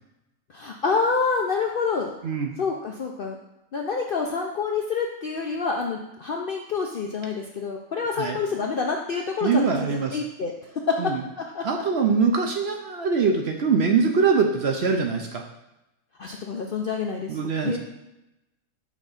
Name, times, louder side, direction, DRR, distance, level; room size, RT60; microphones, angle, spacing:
voice 1, 0.5-2.2 2.6-3.4 3.7-11.7 16.2-17.8, left 5 dB, 60° left, 1 dB, 0.5 m, -27 dB
voice 2, 9.4-10.2 11.0-11.2 11.6-15.4 17.3-17.8, right 5 dB, 60° right, 3 dB, 0.8 m, -23 dB
6.2 x 3.5 x 5.6 m, 0.91 s
omnidirectional pair, 1.5 m